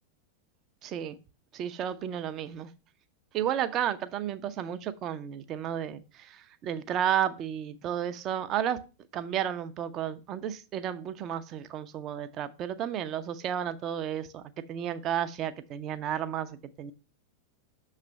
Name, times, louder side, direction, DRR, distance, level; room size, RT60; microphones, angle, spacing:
voice 1, 0.8-1.2 1.5-2.7 3.3-8.8 9.1-14.4 14.7-16.9, right 10 dB, 35° right, 0.6 m, -32 dB
6.6 x 3.2 x 5.0 m
figure-of-eight pair, 90°, 0 cm